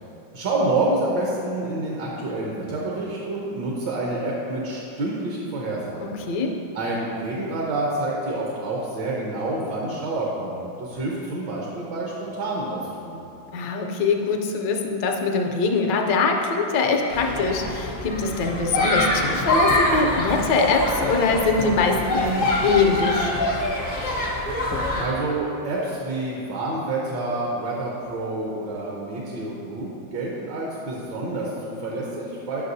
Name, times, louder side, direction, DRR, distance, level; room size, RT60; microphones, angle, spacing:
voice 1, 0.3-6.2 6.7-13.2 25.0-32.6, right 2 dB, 70° right, -3 dB, 1.4 m, -28 dB
voice 2, 13.5-23.3, left 4 dB, 70° left, 2 dB, 1.1 m, -23 dB
sound 1, 17.1-25.0, left 1 dB, 50° left, 0.6 m, -24 dB
9.5 x 5.8 x 2.6 m, 2.7 s
omnidirectional pair, 2.2 m